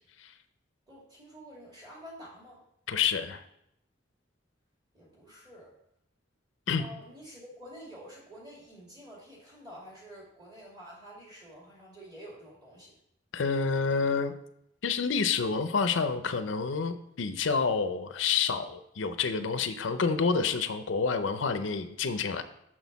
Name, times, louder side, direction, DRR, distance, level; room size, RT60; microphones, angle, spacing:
voice 1, 0.9-2.6 4.9-5.8 6.7-12.9, equal, 20° right, -5 dB, 2.5 m, -49 dB
voice 2, 2.9-3.4 6.7-6.9 13.3-14.3 14.8-22.4, left 5 dB, 80° left, 10 dB, 0.5 m, -28 dB
6.2 x 6.2 x 4.0 m, 0.77 s
head